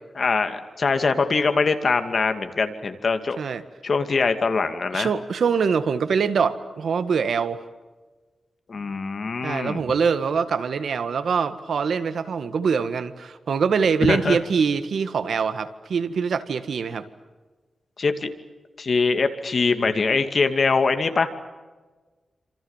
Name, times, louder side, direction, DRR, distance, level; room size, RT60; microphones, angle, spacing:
voice 1, 0.2-3.4 3.8-5.1 8.7-9.8 14.1-14.4 18.0-18.3 18.8-21.3, left 4 dB, 45° left, 8 dB, 2.4 m, -23 dB
voice 2, 4.9-7.6 9.4-17.1, right 6 dB, 70° right, 11 dB, 1.8 m, -24 dB
28.5 x 27.0 x 7.4 m, 1.3 s
wide cardioid pair, 145°, 0 cm